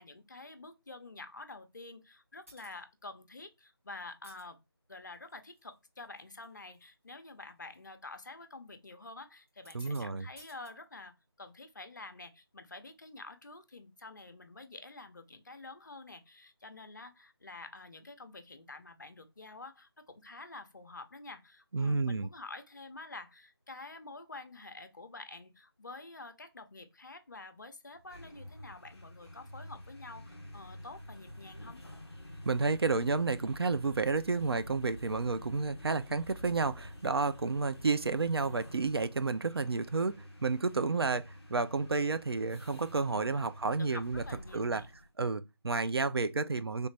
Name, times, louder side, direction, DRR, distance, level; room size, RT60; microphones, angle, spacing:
voice 1, 0.0-4.6 4.9-31.8 43.1-43.4 43.8-44.9, left 3 dB, 45° left, 0.7 m, -48 dB
sound 1, 2.5-2.8 4.1-4.4 5.1-5.6 6.0-6.5 6.8-6.9 7.7-7.9 9.5-10.0 10.4-10.7, equal, 30° right, 1.8 m, -56 dB
voice 2, 9.7-10.3 21.7-22.3 32.4-44.2 44.5-44.8 45.2-46.9, right 4 dB, 65° right, 0.4 m, -31 dB
sound 2, 27.9-45.1, left 1 dB, ahead, 0.6 m, -49 dB
3.9 x 3.2 x 3.2 m
figure-of-eight pair, 170°, 14 cm